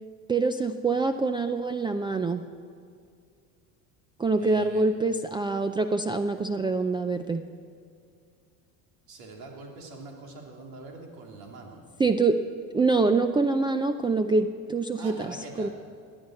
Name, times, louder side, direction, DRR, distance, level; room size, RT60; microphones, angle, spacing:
voice 1, 0.3-2.4 4.2-7.4 12.0-12.4 12.7-15.7, right 3 dB, 15° right, 8 dB, 0.4 m, -25 dB
voice 2, 4.4-4.9 9.1-11.9 15.0-15.7, right 3 dB, 70° right, 1 dB, 3.2 m, -43 dB
17.5 x 9.8 x 7.7 m, 2.3 s
cardioid pair, 120°, 38 cm